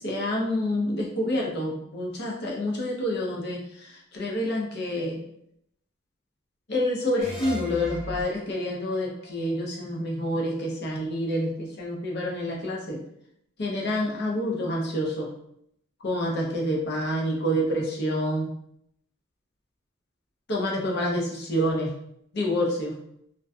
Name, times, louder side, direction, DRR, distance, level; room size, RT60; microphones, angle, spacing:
voice 1, 0.0-5.2 6.7-13.0 13.6-15.3 16.0-18.5 20.5-21.9 22.3-22.9, equal, 50° left, -2 dB, 0.6 m, -28 dB
sound 1, 7.2-10.5, right 1 dB, 5° right, 0.8 m, -40 dB
2.5 x 2.2 x 2.3 m, 0.72 s
head